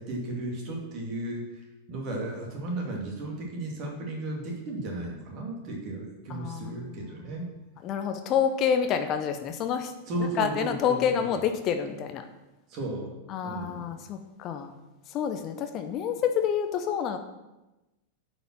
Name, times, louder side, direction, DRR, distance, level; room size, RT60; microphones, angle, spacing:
voice 1, 0.0-7.5 10.1-11.4 12.7-13.9, right 2 dB, 40° right, 0 dB, 2.5 m, -35 dB
voice 2, 6.3-7.4 7.8-9.9 10.4-12.3 13.3-14.7 15.1-17.2, left 8 dB, 35° left, 7 dB, 0.7 m, -28 dB
9.3 x 5.2 x 6.1 m, 1.0 s
figure-of-eight pair, 90°, 0 cm